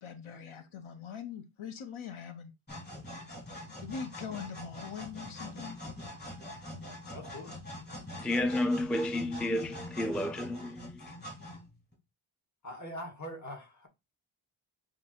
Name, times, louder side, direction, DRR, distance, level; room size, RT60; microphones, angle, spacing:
voice 1, 0.0-2.5 3.8-5.8, left 7 dB, 75° left, 0.9 m, -42 dB
sound 1, 2.7-11.9, left 1 dB, 20° left, 3.5 m, -44 dB
voice 2, 7.1-7.6 12.6-13.9, equal, 35° left, 2.1 m, -42 dB
voice 3, 8.2-11.1, left 1 dB, ahead, 0.3 m, -31 dB
8.7 x 3.0 x 4.4 m
wide cardioid pair, 155°, 49 cm